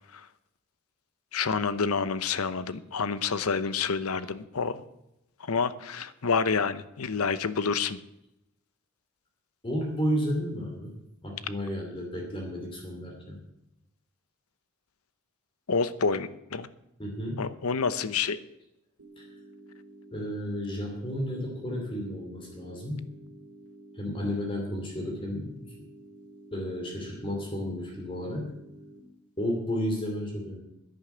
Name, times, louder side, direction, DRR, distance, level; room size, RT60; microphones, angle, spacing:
voice 1, 1.3-4.8 5.4-8.0 15.7-16.7 17.4-18.4, left 5 dB, 85° left, 14 dB, 0.8 m, -28 dB
voice 2, 9.6-10.9 11.2-13.4 17.0-17.4 19.2-19.3 20.1-23.1 23.9-25.7 26.5-28.5 29.4-30.6, equal, 25° left, 1 dB, 2.6 m, -32 dB
sound 1, 19.0-29.0, right 1 dB, 85° right, 2.6 m, -51 dB
11.0 x 10.5 x 7.8 m, 0.85 s
head